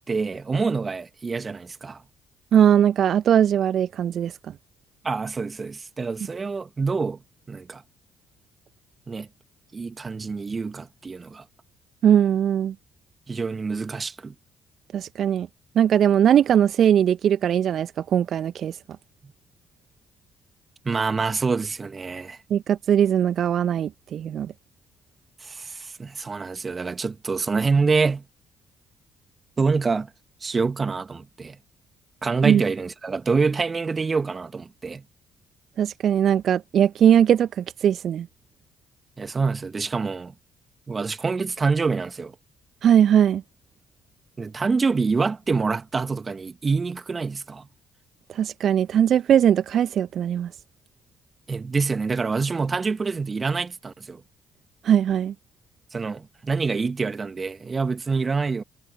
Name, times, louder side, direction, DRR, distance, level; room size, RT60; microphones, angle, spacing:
voice 1, 0.1-2.0 5.0-7.2 7.5-7.8 9.1-9.3 9.7-11.4 13.3-14.3 20.8-22.4 25.4-28.2 29.6-30.1 30.4-31.6 32.2-35.0 39.2-40.3 40.9-42.3 44.4-47.7 51.5-54.2 55.9-58.6, right 4 dB, 30° right, 2.2 m, -26 dB
voice 2, 2.5-4.4 12.0-12.7 14.9-15.5 15.7-18.8 22.5-24.5 32.4-32.6 35.8-38.3 42.8-43.4 48.3-50.5 54.8-55.3, right 9 dB, 55° right, 1.3 m, -20 dB
figure-of-eight pair, 45°, 0 cm